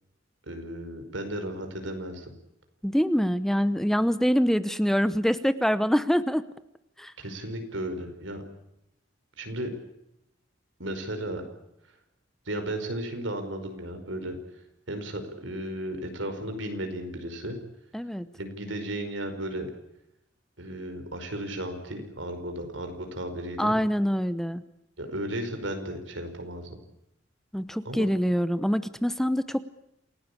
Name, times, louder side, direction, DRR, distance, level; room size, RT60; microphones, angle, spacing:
voice 1, 0.5-2.3 7.2-8.4 9.4-9.7 10.8-11.4 12.4-14.4 14.9-17.6 18.4-19.7 20.6-23.8 25.0-26.8 27.8-28.1, right 1 dB, 85° right, 6 dB, 5.2 m, -34 dB
voice 2, 2.8-6.4 7.0-7.1 17.9-18.3 23.6-24.6 27.5-29.6, equal, ahead, 14 dB, 0.8 m, -25 dB
28.0 x 18.0 x 8.6 m, 0.83 s
head